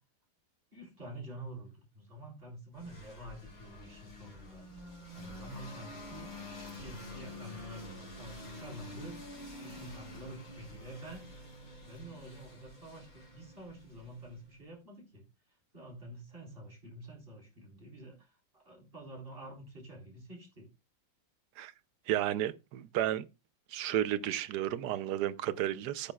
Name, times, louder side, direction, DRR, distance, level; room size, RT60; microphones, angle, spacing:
voice 1, 0.7-4.6 5.1-6.3 6.8-9.2 9.6-11.3 11.8-15.2 15.7-20.7, right 1 dB, 30° right, 4.4 m, -48 dB
sound 1, 2.8-14.5, left 1 dB, 75° left, 4.9 m, -48 dB
voice 2, 22.1-23.2 23.7-26.1, right 12 dB, 70° right, 1.2 m, -32 dB
15.0 x 8.8 x 2.3 m
omnidirectional pair, 2.0 m